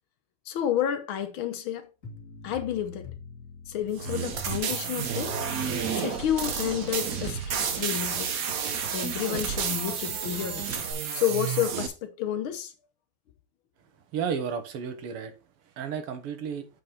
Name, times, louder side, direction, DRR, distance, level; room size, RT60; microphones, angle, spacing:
voice 1, 0.5-1.9 2.4-3.1 3.7-5.3 5.9-8.4 8.9-10.8 11.1-12.7, left 10 dB, 70° left, 1.7 m, -30 dB
sound 1, 2.0-7.3, left 4 dB, 35° left, 2.9 m, -45 dB
sound 2, 4.0-11.9, right 7 dB, 55° right, 1.1 m, -31 dB
sound 3, 5.3-10.9, right 3 dB, 30° right, 2.7 m, -41 dB
voice 2, 14.1-15.3 15.8-16.7, right 7 dB, 85° right, 2.1 m, -32 dB
7.4 x 5.2 x 4.4 m
omnidirectional pair, 2.4 m